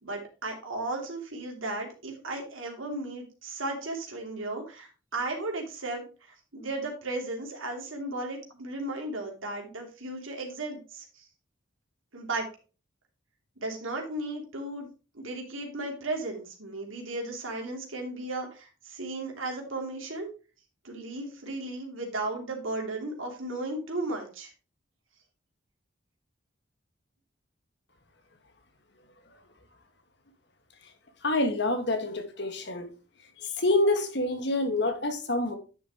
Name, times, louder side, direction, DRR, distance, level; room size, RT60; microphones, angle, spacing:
voice 1, 0.0-11.3 12.1-12.5 13.6-14.9 15.1-20.3 20.8-24.5, right 2 dB, 80° right, 2.8 m, -35 dB
voice 2, 31.2-32.9 33.6-35.6, left 2 dB, 55° left, 1.8 m, -27 dB
10.0 x 6.9 x 3.0 m
head